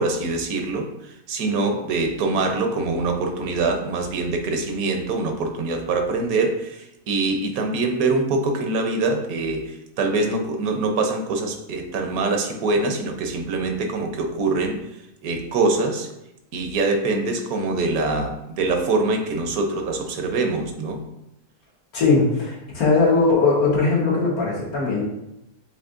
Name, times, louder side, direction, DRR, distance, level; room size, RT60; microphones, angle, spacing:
voice 1, 0.0-14.8 15.2-16.1 16.5-21.0, right 3 dB, 80° right, 4 dB, 1.2 m, -24 dB
voice 2, 21.9-25.0, left 3 dB, 90° left, -4 dB, 1.8 m, -19 dB
7.1 x 2.7 x 2.5 m, 0.86 s
omnidirectional pair, 1.5 m